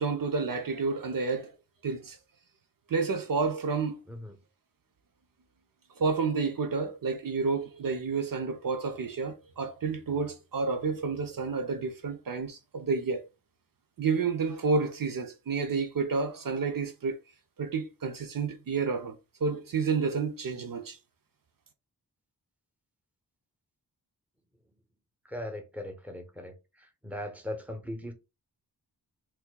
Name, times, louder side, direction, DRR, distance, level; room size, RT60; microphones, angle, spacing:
voice 1, 0.0-1.5 1.8-2.2 2.9-4.0 6.0-13.2 14.0-17.2 17.6-21.0, right 4 dB, 60° right, 0.6 m, -30 dB
voice 2, 25.3-26.5 27.0-28.1, left 1 dB, 5° right, 0.8 m, -38 dB
4.3 x 2.7 x 2.2 m
wide cardioid pair, 75°, 38 cm